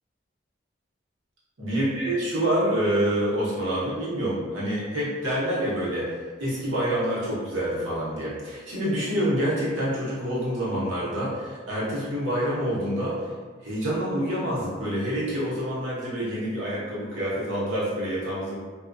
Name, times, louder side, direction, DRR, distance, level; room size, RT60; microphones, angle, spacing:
voice 1, 1.6-6.1 6.4-13.2 13.6-18.5, equal, 85° right, -8 dB, 0.9 m, -27 dB
2.2 x 2.2 x 2.5 m, 1.5 s
head